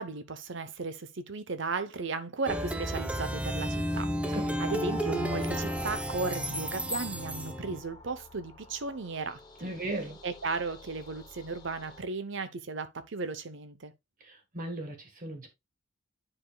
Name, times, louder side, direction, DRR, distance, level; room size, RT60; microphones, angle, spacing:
voice 1, 0.0-4.1 4.6-9.7 10.2-13.9, right 4 dB, 65° right, 0.8 m, -35 dB
Plucked string instrument, 2.5-7.8, equal, 5° right, 0.6 m, -32 dB
voice 2, 4.2-4.7 9.6-10.2 14.2-15.5, right 1 dB, 40° right, 1.5 m, -37 dB
sound 1, 4.7-12.0, left 4 dB, 20° left, 1.3 m, -48 dB
9.9 x 4.9 x 2.3 m
head